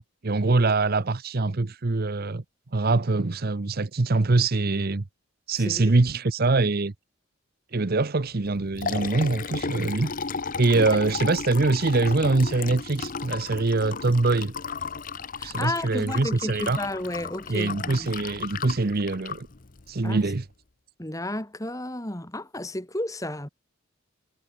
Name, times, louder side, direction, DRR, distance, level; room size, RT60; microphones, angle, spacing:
voice 1, 0.0-2.4 2.7-5.0 5.5-6.9 7.7-10.1 10.6-14.5 15.4-16.8 17.5-19.5 19.9-20.4, right 3 dB, 45° right, 0.8 m, -24 dB
voice 2, 5.6-5.9 10.0-10.1 15.4-18.1 20.0-20.2 21.0-23.5, left 1 dB, 15° left, 2.7 m, -32 dB
Liquid, 8.4-20.4, left 5 dB, 40° left, 0.9 m, -34 dB
head